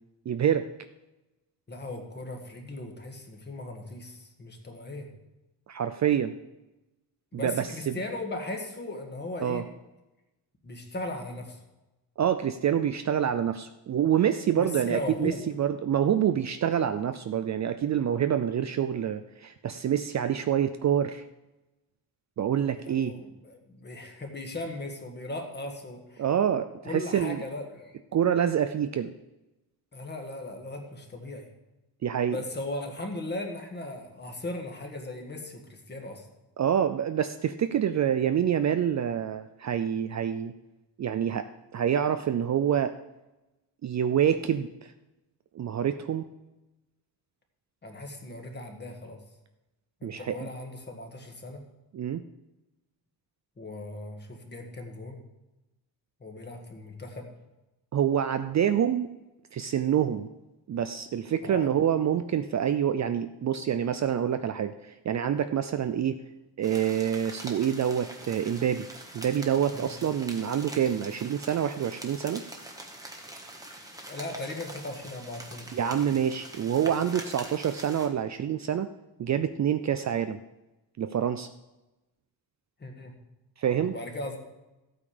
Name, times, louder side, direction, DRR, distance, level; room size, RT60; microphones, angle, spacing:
voice 1, 0.3-0.7 5.7-6.4 7.3-7.9 9.4-9.6 12.2-21.2 22.4-23.1 26.2-27.4 28.1-29.1 32.0-32.4 36.6-40.5 41.0-42.9 43.8-44.9 45.6-46.2 50.0-50.5 51.9-52.2 57.9-59.1 59.5-60.3 60.7-66.2 66.6-68.9 69.1-72.4 75.7-78.9 79.2-80.4 81.0-81.5 83.6-83.9, right 9 dB, 45° right, 9 dB, 0.5 m, -27 dB
voice 2, 1.7-5.1 7.3-9.7 10.6-11.6 14.5-15.4 22.8-26.2 26.8-27.9 29.9-31.5 32.3-36.2 47.8-49.2 50.0-51.6 53.6-55.2 56.2-57.3 61.4-61.7 69.7-69.9 74.1-75.9 82.8-83.2 83.8-84.4, left 2 dB, 25° left, 3 dB, 1.7 m, -38 dB
sound 1, 66.6-78.1, right 1 dB, 10° right, 1.2 m, -44 dB
14.0 x 8.7 x 5.0 m, 1.0 s
wide cardioid pair, 175°, 42 cm